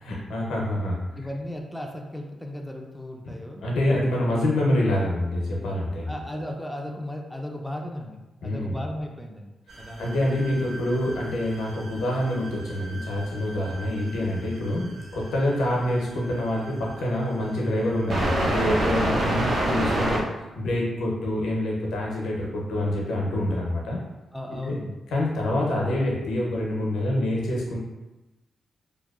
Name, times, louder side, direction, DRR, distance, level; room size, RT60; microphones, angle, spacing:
voice 1, 0.0-1.0 3.3-3.4 3.6-6.1 8.4-8.8 10.0-20.2 20.6-24.0 24.6-24.7 25.1-27.8, left 1 dB, 85° left, -3 dB, 0.5 m, -26 dB
voice 2, 1.2-3.6 6.1-10.2 19.4-19.7 24.3-25.0, left 1 dB, 5° left, 1 dB, 0.4 m, -36 dB
sound 1, 9.7-20.2, right 1 dB, 65° right, 0.5 m, -30 dB
2.6 x 2.2 x 2.3 m, 1.1 s
cardioid pair, 60°, 0 cm